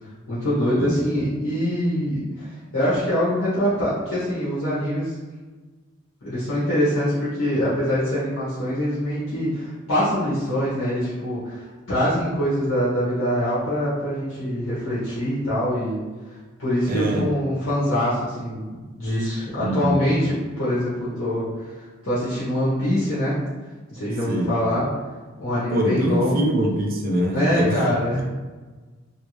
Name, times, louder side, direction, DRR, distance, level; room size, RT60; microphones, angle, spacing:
voice 1, 0.0-5.2 6.2-23.4 23.9-24.8 25.4-26.5 27.3-28.2, equal, 80° left, -10 dB, 1.0 m, -24 dB
voice 2, 16.9-17.3 19.6-20.0 24.3-24.6 25.7-27.9, equal, 45° right, 1 dB, 0.5 m, -23 dB
3.1 x 2.6 x 3.0 m, 1.3 s
head